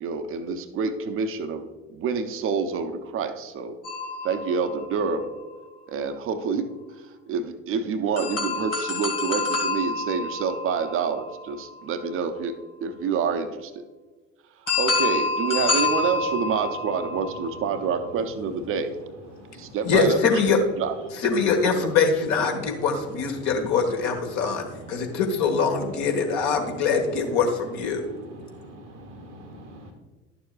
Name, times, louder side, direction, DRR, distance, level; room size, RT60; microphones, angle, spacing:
voice 1, 0.0-1.6 1.9-3.8 4.2-5.3 5.9-6.7 7.0-12.5 12.8-13.8 14.8-19.0 19.6-20.2 20.8-20.9 21.8-21.9, right 5 dB, 35° right, 9 dB, 0.7 m, -27 dB
sound 1, 3.8-5.6 8.2-12.1 14.7-18.1, left 3 dB, 85° left, 1.7 m, -28 dB
voice 2, 19.8-20.6 21.2-28.0, left 5 dB, 50° left, 3 dB, 1.4 m, -23 dB
voice 3, 28.4-29.9, equal, 80° right, 3 dB, 1.3 m, -44 dB
11.5 x 6.7 x 2.4 m, 1.2 s
figure-of-eight pair, 60°, 35 cm